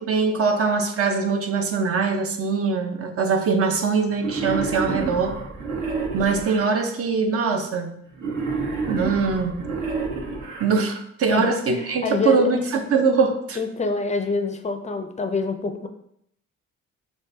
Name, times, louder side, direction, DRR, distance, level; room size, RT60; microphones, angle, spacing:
voice 1, 0.1-5.4 6.1-8.0 8.9-9.7 10.6-13.6, right 4 dB, 50° right, 5 dB, 0.7 m, -22 dB
Wild animals, 4.2-6.6 8.2-10.6, right 4 dB, 70° right, 1.2 m, -29 dB
voice 2, 11.3-12.5 13.6-15.9, left 3 dB, 25° left, 6 dB, 0.5 m, -26 dB
6.3 x 2.3 x 2.7 m, 0.72 s
cardioid pair, 90°, 30 cm